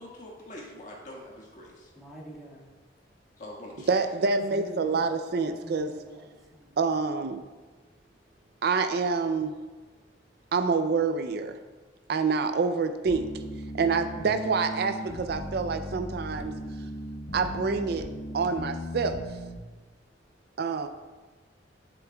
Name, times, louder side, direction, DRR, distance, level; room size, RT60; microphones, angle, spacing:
voice 1, 0.0-1.9 3.4-4.0, left 1 dB, 45° left, -3 dB, 1.6 m, -44 dB
voice 2, 1.9-2.8 4.2-5.0 5.4-6.8, equal, ahead, -6 dB, 1.7 m, -45 dB
voice 3, 3.9-5.9 6.8-7.4 8.6-9.5 10.5-11.6 12.1-13.3 13.7-16.5 17.3-18.1 18.3-19.2 20.6-20.9, right 4 dB, 60° right, 9 dB, 0.4 m, -27 dB
sound 1, 13.1-19.6, equal, 65° left, 0.9 m, -38 dB
10.5 x 6.9 x 2.3 m, 1.3 s
head